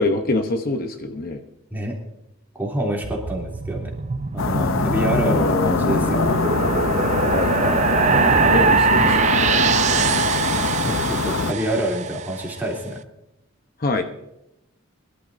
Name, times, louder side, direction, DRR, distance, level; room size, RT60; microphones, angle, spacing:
voice 1, 0.0-1.4 5.2-6.1 7.3-9.5 13.8-14.0, left 2 dB, 45° left, 5 dB, 0.9 m, -25 dB
voice 2, 2.6-3.9 4.3-6.4 10.8-13.0, right 1 dB, 10° right, -2 dB, 3.0 m, -27 dB
sound 1, 3.0-12.4, right 5 dB, 35° right, 0.4 m, -22 dB
sound 2, 4.4-11.5, left 4 dB, 70° left, 0.7 m, -23 dB
23.5 x 12.0 x 2.7 m, 0.87 s
head